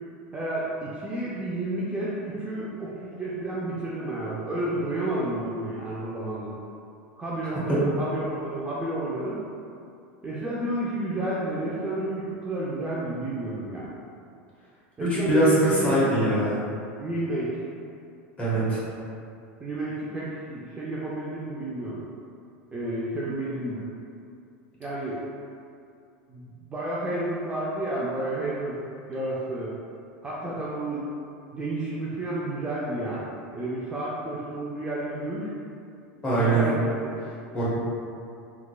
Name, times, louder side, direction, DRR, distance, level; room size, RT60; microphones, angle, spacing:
voice 1, 0.3-6.5 7.2-9.4 10.2-14.0 15.0-16.1 17.0-17.6 19.6-22.0 22.7-23.9 24.8-25.2 26.3-28.8 29.1-29.7 30.2-31.1 31.5-35.5 36.4-36.9, right 1 dB, 15° right, -7 dB, 0.5 m, -31 dB
voice 2, 15.0-16.6 18.4-18.8 36.2-36.6 37.5-37.6, right 1 dB, 20° left, -9 dB, 1.3 m, -22 dB
3.6 x 2.9 x 2.3 m, 2.5 s
supercardioid pair, 120°, 7 cm